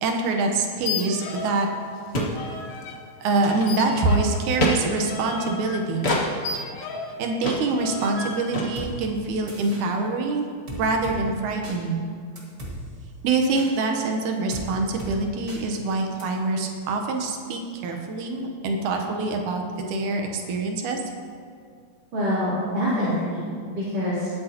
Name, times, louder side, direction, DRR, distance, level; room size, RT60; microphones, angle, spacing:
voice 1, 0.0-1.7 3.2-6.1 7.2-12.1 13.2-21.0, right 3 dB, 90° right, 2 dB, 2.4 m, -25 dB
sound 1, 0.8-1.7 1.9-3.0 3.7-7.2 7.8-8.5, left 4 dB, 70° left, 1.9 m, -34 dB
sound 2, 1.4-1.5 1.7-1.8 2.1-2.4 2.7-2.9 3.3-4.0 4.6-4.8 6.0-6.3 6.8-6.9 7.4-7.6 7.9-8.3 8.5-8.7, left 1 dB, 35° left, 1.0 m, -25 dB
sound 3, 8.8-8.9 9.5-9.8 10.7-11.2 11.6-11.8 12.4-12.7 13.6-13.7 14.5-14.7 15.0-15.1 15.5-15.6 16.2-16.3, right 1 dB, 30° right, 1.6 m, -36 dB
voice 2, 22.1-24.4, equal, 65° right, -12 dB, 4.3 m, -26 dB
19.5 x 8.4 x 2.9 m, 2.2 s
omnidirectional pair, 3.4 m